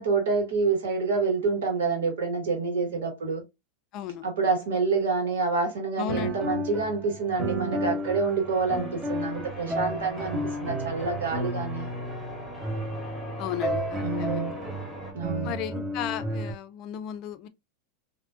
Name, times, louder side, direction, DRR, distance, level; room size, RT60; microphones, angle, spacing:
voice 1, 0.0-3.4 4.2-11.9 14.0-14.5 15.1-15.5, right 4 dB, 75° right, 1.5 m, -27 dB
voice 2, 3.9-4.2 6.0-6.5 13.4-14.4 15.4-17.5, left 9 dB, 45° left, 0.4 m, -35 dB
sound 1, 6.1-16.5, equal, 25° right, 1.4 m, -32 dB
Church bell, 7.8-15.1, left 1 dB, 5° right, 1.9 m, -42 dB
3.4 x 2.6 x 2.5 m
hypercardioid pair, 95°, 0 cm